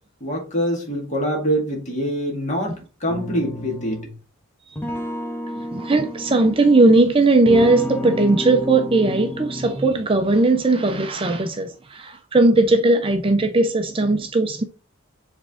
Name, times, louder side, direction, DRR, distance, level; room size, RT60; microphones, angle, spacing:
voice 1, 0.2-4.1, equal, 35° left, 2.2 m, -25 dB
sound 1, 3.1-4.2 4.7-7.0 7.4-10.0, equal, 10° left, 1.0 m, -30 dB
voice 2, 5.5-14.6, right 2 dB, 25° right, 0.5 m, -18 dB
7.0 x 3.6 x 3.7 m
head